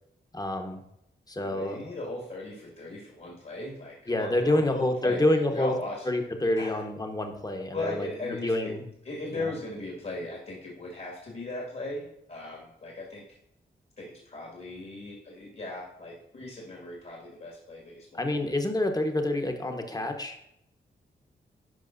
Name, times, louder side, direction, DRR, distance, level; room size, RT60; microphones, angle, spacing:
voice 1, 0.3-0.8 1.3-1.9 4.1-5.7 6.0-8.9 9.3-9.5 18.1-20.4, left 1 dB, 20° left, 4 dB, 1.2 m, -28 dB
voice 2, 1.4-6.0 6.5-6.8 7.7-8.7 9.0-13.2 14.0-18.5, left 2 dB, 50° left, -3 dB, 2.2 m, -38 dB
11.0 x 5.1 x 2.7 m, 0.80 s
supercardioid pair, 45°, 20 cm